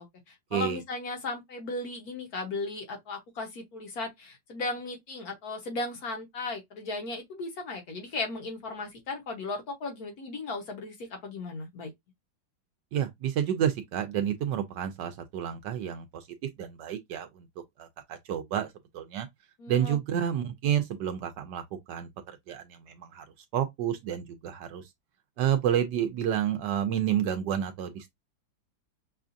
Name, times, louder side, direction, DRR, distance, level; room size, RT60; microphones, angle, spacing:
voice 1, 0.0-11.9 19.6-20.3, left 3 dB, 60° left, 1.2 m, -36 dB
voice 2, 12.9-16.3 16.6-17.5 17.8-19.3 19.7-21.6 21.9-23.2 23.5-24.9 25.4-28.1, right 9 dB, 75° right, 1.1 m, -30 dB
5.6 x 2.4 x 2.5 m
omnidirectional pair, 2.1 m